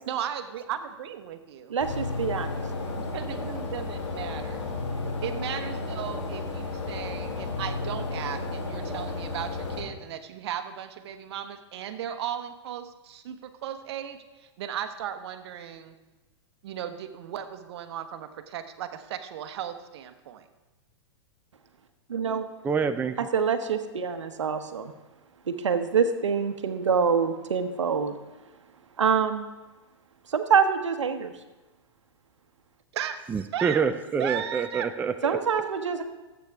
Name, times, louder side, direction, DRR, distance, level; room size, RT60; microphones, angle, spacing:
voice 1, 0.1-1.7 3.0-4.6 5.2-15.9 16.6-20.4 32.9-33.8 34.2-34.9, right 9 dB, 65° right, 8 dB, 1.1 m, -36 dB
voice 2, 1.7-2.5 5.0-5.1 22.1-22.5 23.2-24.9 25.5-28.1 29.0-29.4 30.3-31.3 35.2-36.0, right 6 dB, 90° right, 8 dB, 1.0 m, -25 dB
sound 1, 1.8-9.8, left 3 dB, 90° left, 2.9 m, -33 dB
voice 3, 22.6-23.2 33.3-35.3, right 6 dB, 10° right, 9 dB, 0.5 m, -26 dB
14.5 x 8.2 x 3.5 m, 1.1 s
hypercardioid pair, 120°, 15 cm